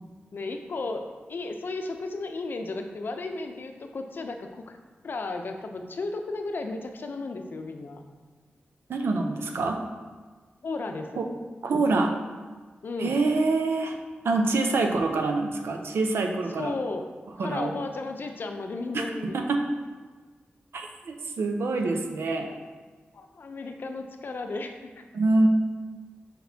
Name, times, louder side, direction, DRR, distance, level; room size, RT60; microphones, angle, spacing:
voice 1, 0.3-4.8 5.0-8.0 10.6-11.2 12.8-13.2 16.6-17.1 17.4-19.4 22.5-22.6 23.1-25.0, left 3 dB, 60° left, 5 dB, 0.6 m, -34 dB
voice 2, 8.9-9.8 11.2-11.3 11.6-12.1 13.0-14.0 14.2-16.7 17.4-17.7 18.9-19.0 19.3-19.6 20.7-22.5 25.1-25.5, right 3 dB, 85° right, 3 dB, 0.7 m, -25 dB
6.0 x 5.7 x 2.8 m, 1.4 s
wide cardioid pair, 100°, 4 cm